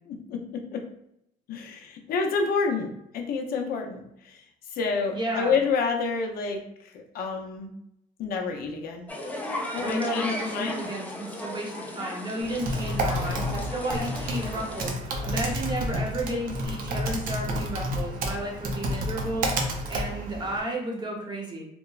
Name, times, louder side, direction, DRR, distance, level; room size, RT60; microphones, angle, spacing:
voice 1, 0.1-0.9 1.5-7.8 8.2-9.1 9.7-10.8, left 5 dB, 60° left, 3 dB, 0.5 m, -29 dB
voice 2, 5.1-5.5 9.8-21.7, right 1 dB, 25° right, -1 dB, 0.8 m, -32 dB
sound 1, 9.1-14.9, left 1 dB, 10° left, 0.4 m, -36 dB
Typing, 12.4-20.6, equal, 55° right, 0.5 m, -30 dB
2.9 x 2.0 x 2.3 m, 0.77 s
cardioid pair, 110°, 17 cm